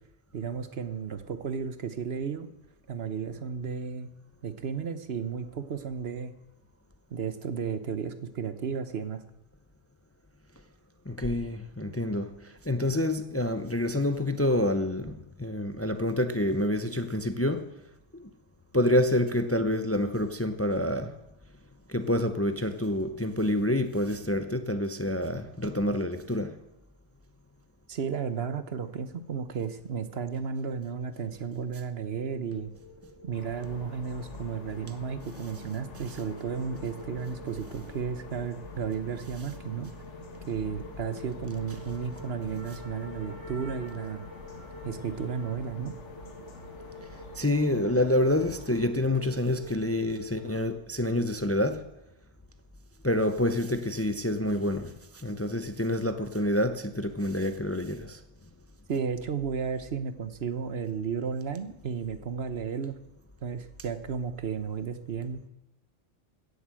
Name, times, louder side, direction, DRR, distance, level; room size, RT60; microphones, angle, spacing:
voice 1, 0.3-2.5 2.9-4.1 4.4-6.3 7.1-9.2 27.9-32.7 33.2-39.9 40.5-44.2 44.8-46.0 58.9-62.9 63.4-65.4, right 6 dB, 60° right, 1.2 m, -33 dB
voice 2, 11.1-12.3 12.7-17.6 18.7-21.1 21.9-26.5 47.4-51.8 53.0-54.9 55.2-58.2, left 1 dB, 15° left, 0.7 m, -27 dB
sound 1, 32.2-50.7, left 1 dB, 25° right, 2.2 m, -48 dB
sound 2, 33.3-48.9, left 4 dB, 85° left, 1.9 m, -46 dB
16.5 x 8.1 x 7.6 m
omnidirectional pair, 1.2 m